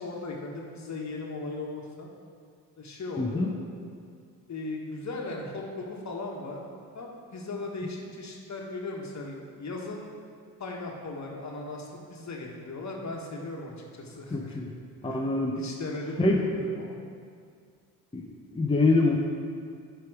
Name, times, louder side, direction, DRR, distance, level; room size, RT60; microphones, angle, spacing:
voice 1, 0.0-2.1 2.8-3.6 4.5-6.6 6.9-10.1 10.6-14.6 15.0-17.0, left 2 dB, 45° left, 0 dB, 1.4 m, -37 dB
voice 2, 3.2-3.5 14.3-14.7 15.0-15.6 16.2-16.4 18.1-18.2 18.5-19.2, left 2 dB, 15° left, -1 dB, 0.8 m, -24 dB
9.8 x 3.4 x 4.9 m, 2.2 s
supercardioid pair, 55°, 40 cm